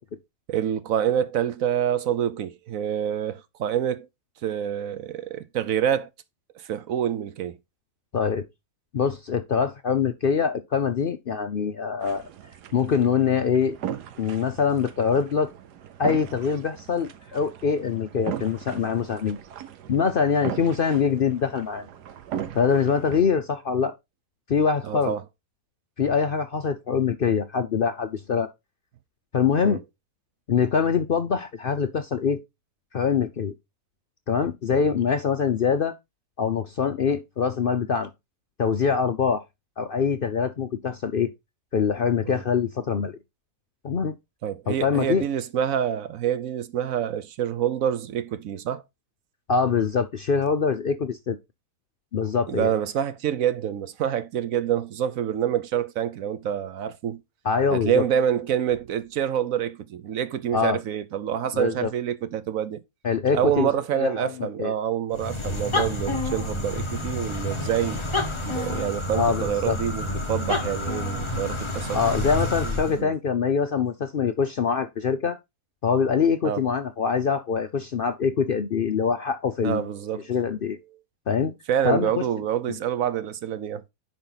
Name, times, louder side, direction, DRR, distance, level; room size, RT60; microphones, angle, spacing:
voice 1, 0.5-4.1 4.4-6.1 6.5-7.6 24.8-25.2 29.6-29.8 34.7-34.9 42.2-42.4 44.4-48.8 52.5-57.2 57.7-62.8 63.3-68.0 68.4-72.3 72.6-73.1 76.4-76.6 79.6-80.3 81.7-83.8, right 9 dB, 60° right, 1.1 m, -27 dB
voice 2, 8.1-8.4 8.9-12.2 12.7-13.8 14.2-15.5 16.0-19.4 19.9-21.9 22.5-23.9 24.5-25.1 26.0-28.5 29.3-29.8 30.5-32.4 32.9-33.5 34.3-35.9 36.4-38.1 38.6-39.4 39.8-41.3 41.7-43.2 43.8-44.1 44.7-45.2 49.5-51.4 52.1-52.7 57.4-58.0 60.5-60.8 61.5-61.9 63.0-63.7 64.0-64.3 64.6-64.7 69.1-69.8 71.9-75.4 75.8-79.8 80.1-80.8 81.3-81.5 81.8-82.1, left 6 dB, 70° left, 0.5 m, -24 dB
sound 1, 12.0-23.3, right 10 dB, 80° right, 1.5 m, -38 dB
sound 2, 65.1-73.0, left 2 dB, 20° left, 1.1 m, -29 dB
10.5 x 4.4 x 3.9 m
omnidirectional pair, 1.7 m